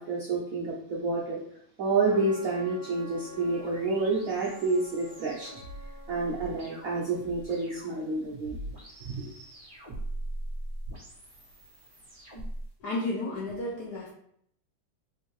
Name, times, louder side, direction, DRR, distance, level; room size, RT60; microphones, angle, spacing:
voice 1, 0.0-1.4 1.8-5.5 6.1-8.6 9.0-9.1, right 3 dB, 75° right, -4 dB, 0.7 m, -29 dB
Trumpet, 2.0-8.2, equal, 50° right, 1.0 m, -49 dB
sound 1, 2.9-12.7, right 1 dB, 30° right, 1.2 m, -42 dB
voice 2, 12.8-14.1, left 2 dB, 65° left, -2 dB, 1.1 m, -32 dB
4.3 x 2.6 x 3.1 m, 0.68 s
omnidirectional pair, 2.3 m